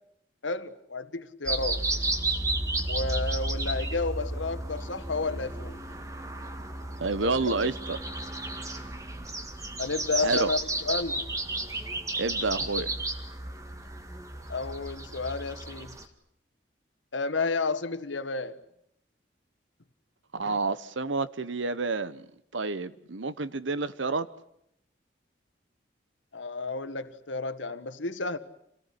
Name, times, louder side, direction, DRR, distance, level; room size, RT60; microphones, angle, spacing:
voice 1, 0.4-1.8 2.9-5.8 7.2-7.3 9.8-11.3 14.5-16.0 17.1-18.6 26.3-28.4, left 3 dB, 80° left, 1.5 m, -31 dB
sound 1, 1.4-16.0, right 2 dB, 15° right, 2.0 m, -33 dB
voice 2, 7.0-8.0 10.2-10.5 12.2-12.9 20.3-22.3 22.5-24.3, right 3 dB, 80° right, 1.1 m, -29 dB
27.0 x 18.0 x 9.9 m
head